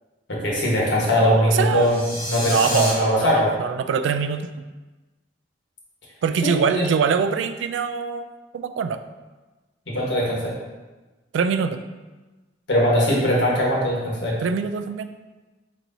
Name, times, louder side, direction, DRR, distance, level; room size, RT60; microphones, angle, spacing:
voice 1, 0.3-2.0 2.3-3.5 6.4-6.8 9.9-10.5 12.7-14.4, equal, 80° left, -4 dB, 1.3 m, -21 dB
voice 2, 1.2-1.9 2.5-4.5 6.2-8.3 8.5-9.0 11.3-11.8 14.4-15.1, right 6 dB, 90° right, 10 dB, 0.3 m, -23 dB
sound 1, 1.7-2.9, left 1 dB, 30° left, 1.2 m, -29 dB
4.5 x 4.2 x 2.6 m, 1.2 s
head